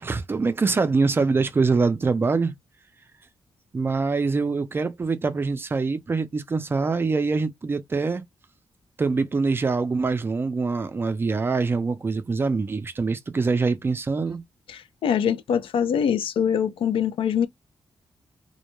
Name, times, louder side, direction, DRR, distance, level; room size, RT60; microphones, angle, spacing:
voice 1, 0.0-2.5 3.7-8.2 9.0-14.4, right 4 dB, 25° right, 0.3 m, -24 dB
voice 2, 14.7-17.5, left 8 dB, 85° left, 0.4 m, -24 dB
2.2 x 2.1 x 2.9 m
wide cardioid pair, 150°, 9 cm